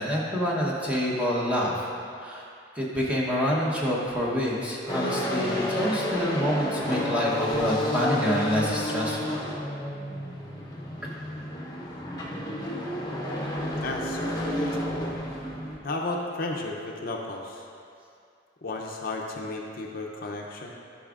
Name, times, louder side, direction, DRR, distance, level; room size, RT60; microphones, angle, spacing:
voice 1, 0.0-1.8 2.2-2.5 2.8-9.3, equal, 5° right, -5 dB, 0.9 m, -27 dB
sound 1, 4.9-15.8, equal, 20° left, 0.8 m, -31 dB
voice 2, 13.8-15.1 15.8-17.6 18.6-20.7, left 2 dB, 50° left, 0 dB, 0.6 m, -33 dB
12.0 x 5.9 x 2.4 m, 2.4 s
head